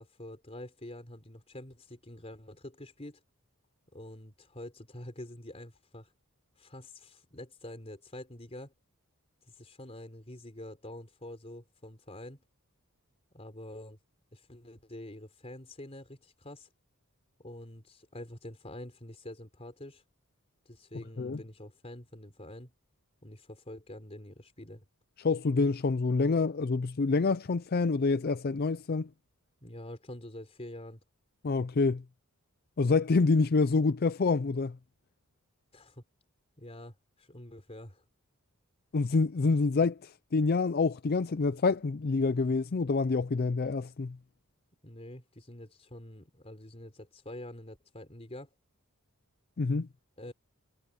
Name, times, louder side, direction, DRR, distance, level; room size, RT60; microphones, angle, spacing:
voice 1, 0.0-3.2 3.9-6.1 6.6-8.7 9.4-12.4 13.3-14.0 14.3-16.7 17.4-20.0 20.7-22.7 23.2-24.8 29.6-31.0 35.7-36.0 36.6-38.0 44.8-48.5 50.2-50.3, left 1 dB, 30° left, 3.9 m, -46 dB
voice 2, 25.2-29.1 31.4-32.0 32.8-34.8 38.9-44.2 49.6-49.9, left 4 dB, 45° left, 0.5 m, -27 dB
head